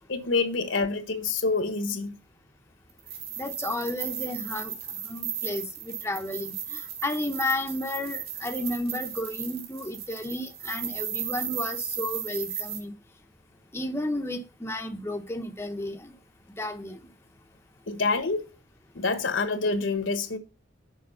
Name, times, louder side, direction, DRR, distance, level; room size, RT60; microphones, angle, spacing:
voice 1, 0.1-2.1 17.9-18.5 18.9-20.4, left 3 dB, 70° left, 1.2 m, -27 dB
sound 1, 3.0-12.8, right 9 dB, 55° right, 2.1 m, -35 dB
voice 2, 3.4-4.7 5.0-12.9 13.7-16.1 16.6-17.1, left 1 dB, 15° left, 0.7 m, -32 dB
6.9 x 5.0 x 5.2 m
head